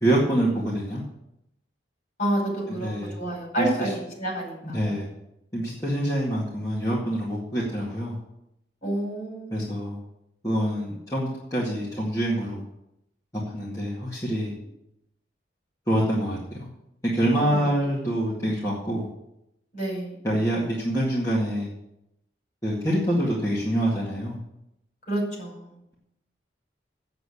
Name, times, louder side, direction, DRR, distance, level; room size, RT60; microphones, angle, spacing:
voice 1, 0.0-1.0 2.8-3.2 3.6-3.9 4.7-5.1 5.5-8.2 9.5-10.0 10.4-12.6 13.5-14.5 15.9-16.7 17.1-19.1 20.2-21.7 22.6-24.4, right 1 dB, 15° left, -7 dB, 2.1 m, -26 dB
voice 2, 2.2-5.0 8.8-9.6 17.3-17.7 19.7-20.2 25.1-25.8, right 1 dB, 45° left, -1 dB, 5.2 m, -29 dB
8.1 x 7.9 x 8.4 m, 0.84 s
head